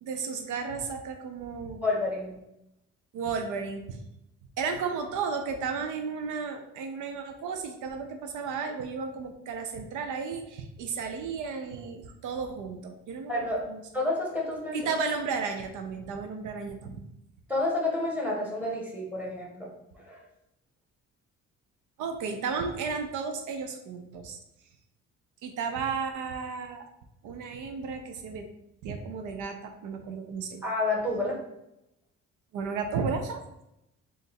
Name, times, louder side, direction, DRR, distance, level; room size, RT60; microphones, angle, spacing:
voice 1, 0.0-1.8 3.1-4.0 4.6-13.8 14.7-17.1 22.0-24.4 25.4-26.9 27.2-28.5 28.8-30.6 32.5-33.4, right 5 dB, 85° right, 6 dB, 0.6 m, -33 dB
voice 2, 1.8-2.3 13.3-13.7 13.9-14.9 17.5-20.2 30.6-31.4, left 2 dB, 5° right, -3 dB, 1.6 m, -30 dB
3.9 x 2.6 x 4.2 m, 0.86 s
cardioid pair, 90°, 30 cm